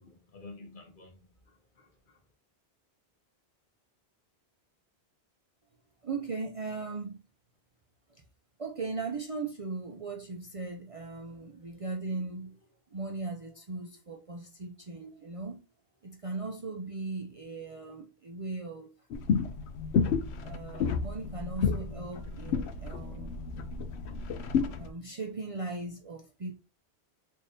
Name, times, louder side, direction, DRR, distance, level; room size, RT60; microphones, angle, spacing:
voice 1, 0.0-2.2, left 3 dB, 55° left, 1.0 m, -51 dB
voice 2, 6.0-7.2 8.1-8.2 8.6-12.6 12.9-15.6 16.0-18.9 20.4-23.4 24.1-24.2 24.7-26.5, right 3 dB, 45° right, 0.5 m, -38 dB
sound 1, 19.1-24.9, left 6 dB, 80° left, 0.8 m, -31 dB
3.4 x 2.7 x 3.8 m
omnidirectional pair, 1.1 m